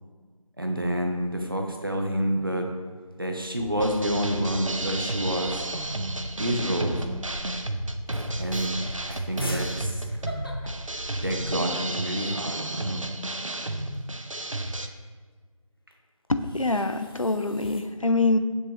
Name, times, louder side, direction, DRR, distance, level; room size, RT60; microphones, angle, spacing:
voice 1, 0.6-2.7 3.2-5.6 6.4-7.0 8.4-8.8 9.1-10.0 11.2-13.0, equal, 40° right, 2 dB, 1.2 m, -28 dB
sound 1, 2.5-3.1 3.5-3.6 3.8-4.4 5.3-6.5 7.2-7.4 7.8-7.9 8.1-11.7 12.1-12.2 12.4-14.7 15.9-17.8, left 1 dB, 40° left, 1.3 m, -44 dB
sound 2, 3.6-11.6, equal, 20° left, 1.9 m, -40 dB
sound 3, 3.8-14.9, right 1 dB, 65° right, 0.9 m, -32 dB
voice 2, 16.3-18.4, left 2 dB, 65° left, 9 dB, 0.8 m, -24 dB
16.5 x 7.6 x 3.2 m, 1.5 s
figure-of-eight pair, 175°, 18 cm